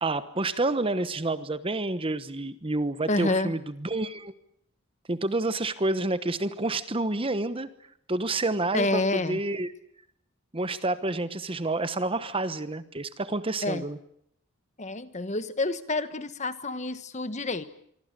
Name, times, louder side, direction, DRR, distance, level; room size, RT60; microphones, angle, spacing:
voice 1, 0.0-4.3 5.1-7.7 8.1-9.7 10.5-14.0, right 2 dB, 25° right, 13 dB, 1.1 m, -29 dB
voice 2, 3.1-3.5 8.7-9.4 13.6-13.8 14.8-17.6, left 2 dB, 35° left, 12 dB, 1.3 m, -28 dB
26.0 x 24.5 x 6.8 m, 0.71 s
head